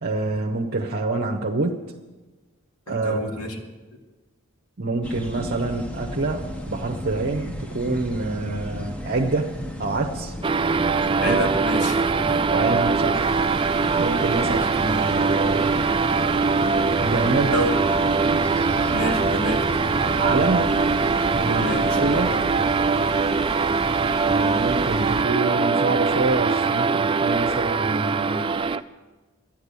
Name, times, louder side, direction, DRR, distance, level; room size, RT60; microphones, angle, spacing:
voice 1, 0.0-1.8 2.9-3.3 4.8-9.5 9.8-10.3 11.2-11.4 12.4-13.3 14.0-15.7 17.0-17.5 20.1-20.7 21.4-22.4 24.2-28.4, right 3 dB, 50° right, 2 dB, 0.8 m, -26 dB
voice 2, 2.9-3.6 11.2-12.4 14.4-14.7 17.4-17.8 18.9-19.6 21.6-22.4, left 1 dB, 90° left, 3 dB, 2.2 m, -29 dB
sound 1, 5.0-22.4, left 1 dB, 5° left, 0.8 m, -34 dB
sound 2, 10.4-28.8, right 4 dB, 25° right, 0.4 m, -22 dB
sound 3, 13.1-25.2, left 1 dB, 35° left, 1.4 m, -34 dB
12.0 x 10.5 x 8.3 m, 1.2 s
head